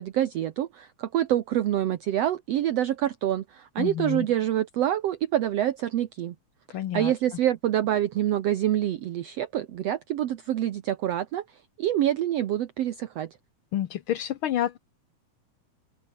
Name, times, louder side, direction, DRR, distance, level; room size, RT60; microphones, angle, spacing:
voice 1, 0.0-6.4 6.7-11.4 11.8-13.3, right 12 dB, 65° right, 1.9 m, -26 dB
voice 2, 3.8-4.3 6.7-7.1 13.7-14.8, left 11 dB, 70° left, 1.3 m, -29 dB
open air
omnidirectional pair, 3.5 m